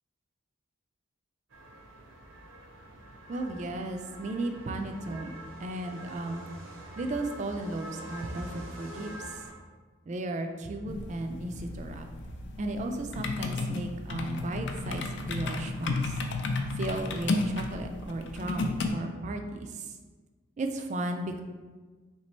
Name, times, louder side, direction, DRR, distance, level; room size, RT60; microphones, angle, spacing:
sound 1, 1.5-9.5, right 1 dB, 70° right, 0.7 m, -46 dB
voice 1, 3.3-5.3 5.6-6.4 7.0-9.4 10.1-12.1 12.6-16.2 16.7-20.0 20.6-21.4, right 2 dB, 35° right, 5 dB, 0.3 m, -35 dB
sound 2, 10.9-18.9, left 3 dB, 55° left, 0.4 m, -33 dB
3.3 x 3.0 x 4.3 m, 1.4 s
head